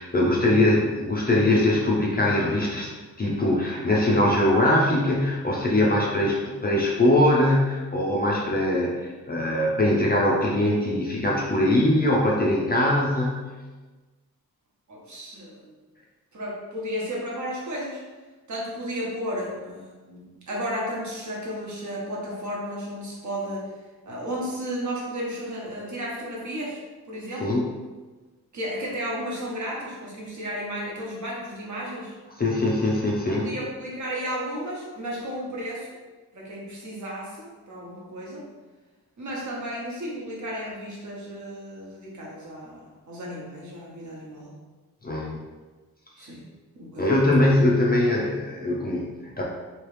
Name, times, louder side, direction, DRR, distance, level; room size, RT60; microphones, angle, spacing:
voice 1, 0.0-2.9 3.2-13.5 27.4-27.7 32.4-33.5 45.0-45.4 46.2-46.3 47.0-49.4, left 1 dB, 25° left, -3 dB, 0.5 m, -22 dB
voice 2, 14.9-15.7 16.3-18.0 18.5-23.7 24.0-26.8 27.1-27.6 28.5-32.1 33.4-35.9 36.3-38.5 39.2-44.6 46.2-46.4 46.7-47.5, equal, 50° right, -4 dB, 1.0 m, -33 dB
3.1 x 2.8 x 3.2 m, 1.3 s
wide cardioid pair, 140°, 37 cm